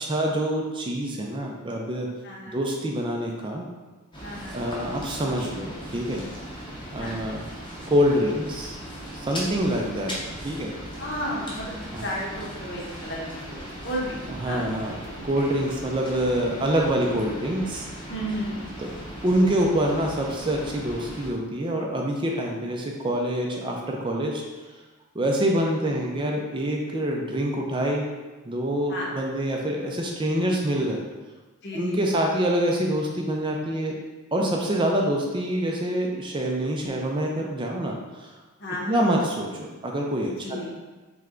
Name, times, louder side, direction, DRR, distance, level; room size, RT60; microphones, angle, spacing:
voice 1, 0.0-2.1 2.5-3.7 4.5-6.2 6.9-7.4 7.9-8.8 9.1-10.1 10.4-10.7 11.9-12.0 14.3-17.9 18.8-18.9 19.2-24.4 25.1-28.1 28.5-31.0 31.7-33.9 34.3-38.3 38.9-40.7, right 1 dB, 20° right, 0 dB, 0.4 m, -26 dB
voice 2, 2.2-2.6 4.2-4.6 7.0-7.2 9.6-9.8 11.0-14.2 14.4-14.6 15.4-15.5 18.1-18.7 28.9-29.1 31.6-32.0 38.6-39.0 40.4-40.7, equal, 55° left, -4 dB, 1.0 m, -33 dB
sound 1, 4.1-21.3, equal, 20° left, 0.7 m, -38 dB
3.3 x 3.2 x 3.7 m, 1.2 s
head